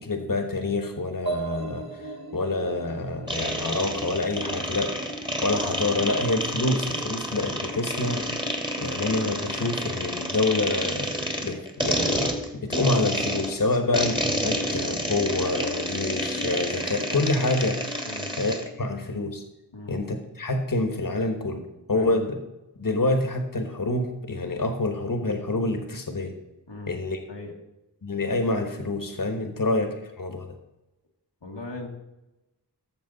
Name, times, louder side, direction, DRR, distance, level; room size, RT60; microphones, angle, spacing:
voice 1, 0.0-4.9 5.4-8.3 8.8-11.1 11.4-18.1 18.4-19.4 19.9-22.4 22.8-26.3 26.9-27.2 28.0-30.5, left 2 dB, 50° left, 5 dB, 1.3 m, -27 dB
sound 1, 1.3-4.9, right 4 dB, 60° right, 2.5 m, -37 dB
sound 2, 3.3-18.7, equal, 10° right, 1.4 m, -29 dB
voice 2, 31.4-31.9, left 2 dB, 90° left, 0 dB, 1.5 m, -39 dB
13.5 x 6.8 x 4.0 m, 0.98 s
wide cardioid pair, 40°, 41 cm